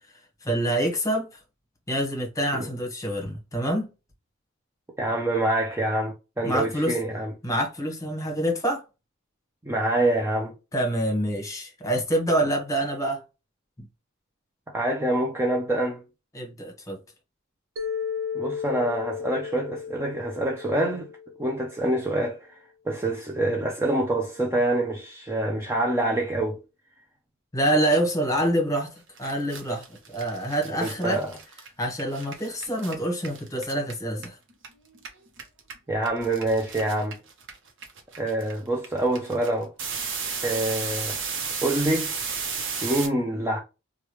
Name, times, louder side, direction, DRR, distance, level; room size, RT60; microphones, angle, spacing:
voice 1, 0.4-1.3 1.9-3.9 6.4-7.0 7.4-8.8 10.7-13.2 16.3-17.0 27.5-29.8 30.1-31.2 31.8-34.4, right 1 dB, 15° left, 1.2 m, -26 dB
voice 2, 5.0-7.3 9.6-10.5 14.7-16.0 18.3-21.1 21.4-26.6 30.6-31.3 35.9-37.2 38.2-39.7 40.4-41.2 41.6-42.2 42.8-43.6, right 1 dB, 10° right, 0.5 m, -26 dB
Mallet percussion, 17.8-21.9, left 7 dB, 75° right, 0.6 m, -34 dB
sound 1, 28.9-29.0 29.2-34.7 34.9-43.1, right 5 dB, 60° right, 1.0 m, -33 dB
3.3 x 2.3 x 3.0 m
head